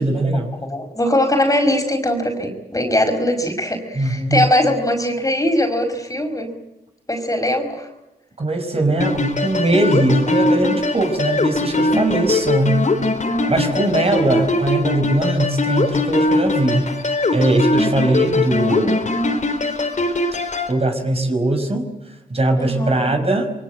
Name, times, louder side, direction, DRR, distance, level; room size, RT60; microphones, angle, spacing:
voice 1, 0.0-0.5 4.0-4.4 8.4-12.9 13.5-16.9 17.3-19.1 20.7-21.9 22.3-23.5, right 2 dB, 35° right, 5 dB, 5.2 m, -20 dB
voice 2, 0.6-6.5 7.1-7.9 22.5-23.2, left 1 dB, 20° left, 5 dB, 5.2 m, -21 dB
sound 1, 9.0-20.7, left 2 dB, 50° left, 3.9 m, -21 dB
26.5 x 23.5 x 7.8 m, 0.95 s
cardioid pair, 85°, 17 cm